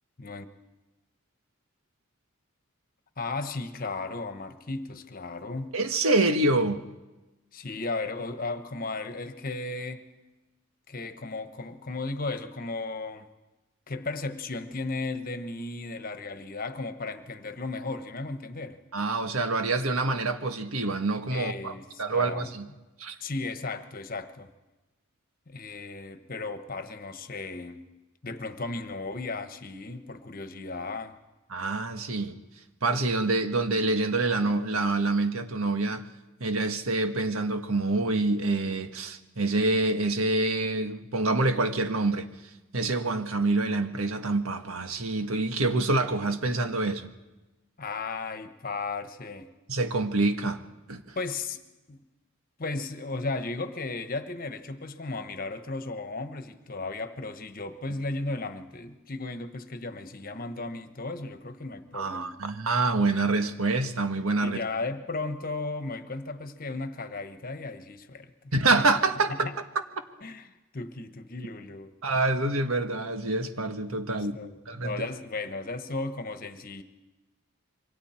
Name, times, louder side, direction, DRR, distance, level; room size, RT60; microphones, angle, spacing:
voice 1, 3.2-5.8 7.5-10.1 10.9-13.3 13.9-18.8 21.3-22.5 23.2-24.5 25.5-27.9 28.2-31.2 47.8-49.5 51.1-51.6 51.9-52.0 52.6-62.4 64.4-68.3 68.8-68.9 69.3-69.5 70.2-70.5 70.7-71.9 74.1-76.8, left 3 dB, 45° left, 1.3 m, -35 dB
voice 2, 5.7-6.8 18.9-21.7 22.0-22.7 23.0-23.1 31.5-32.4 32.8-36.0 36.4-42.3 42.7-47.1 49.7-50.6 50.9-51.2 61.9-64.6 68.5-69.3 72.0-74.3 74.6-75.1, right 2 dB, 90° right, 1.6 m, -26 dB
27.0 x 24.0 x 4.5 m
head